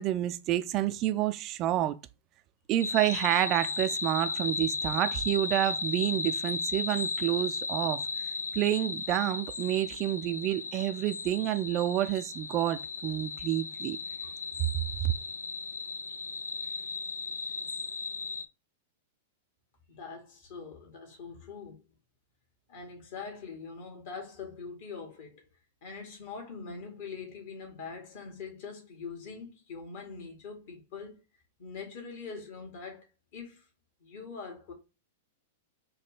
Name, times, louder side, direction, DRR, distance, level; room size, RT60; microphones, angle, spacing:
voice 1, 0.0-2.0 2.7-8.0 8.5-14.0 15.0-15.1, right 13 dB, 35° right, 0.4 m, -29 dB
sound 1, 2.8-18.5, left 4 dB, 80° left, 0.3 m, -35 dB
voice 2, 19.9-21.8 22.7-25.4 25.8-31.2 31.6-33.0 33.3-33.6 34.0-34.7, left 5 dB, 55° left, 1.9 m, -43 dB
4.2 x 2.7 x 3.5 m
figure-of-eight pair, 100°, 0 cm